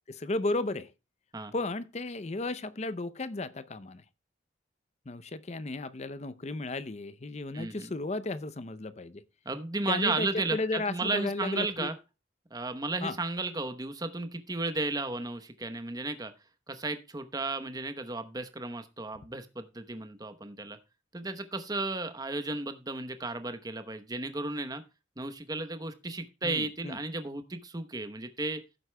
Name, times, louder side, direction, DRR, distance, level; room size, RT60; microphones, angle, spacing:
voice 1, 0.1-0.9 1.5-4.0 5.1-9.2 9.9-11.9 13.0-13.2 26.4-27.1, left 2 dB, 35° left, 0.6 m, -34 dB
voice 2, 7.5-7.9 9.5-11.9 12.5-16.3 16.7-20.8 21.1-24.8 25.2-28.6, right 3 dB, 20° right, 0.9 m, -34 dB
15.5 x 8.0 x 2.2 m
head